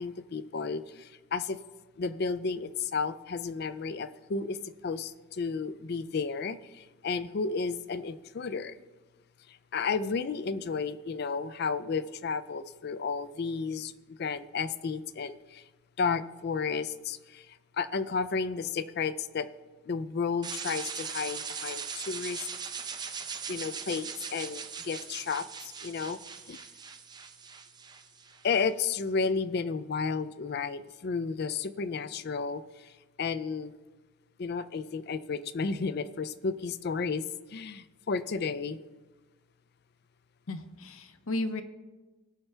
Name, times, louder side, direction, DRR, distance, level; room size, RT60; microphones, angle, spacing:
voice 1, 0.0-1.6 2.0-4.6 4.8-8.8 9.5-15.6 16.0-19.5 19.9-22.5 23.5-26.2 26.5-26.6 28.4-32.9 33.2-33.7 34.4-37.2 37.5-38.8, left 5 dB, 45° left, 13 dB, 0.4 m, -32 dB
sound 1, 20.4-28.5, right 6 dB, 20° right, 0.4 m, -40 dB
voice 2, 40.5-41.6, left 2 dB, 75° left, 10 dB, 0.7 m, -34 dB
17.0 x 5.7 x 3.3 m, 1.2 s
head